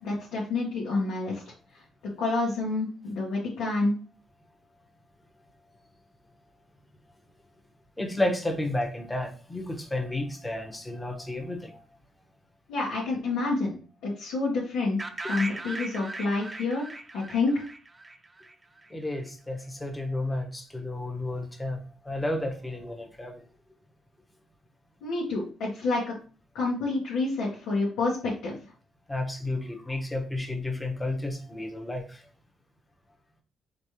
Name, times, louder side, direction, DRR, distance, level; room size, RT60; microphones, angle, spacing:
voice 1, 0.0-1.4 1.7-1.8 2.2-3.9 12.7-13.8 14.0-16.9 17.1-17.6 25.0-26.1 26.5-28.5, left 3 dB, 90° left, 1.4 m, -28 dB
voice 2, 8.0-11.8 18.9-23.4 29.1-32.2, left 1 dB, 10° left, 1.1 m, -32 dB
sound 1, 15.0-18.9, right 2 dB, 20° right, 0.7 m, -38 dB
5.2 x 3.2 x 3.1 m
cardioid pair, 90°, 0 cm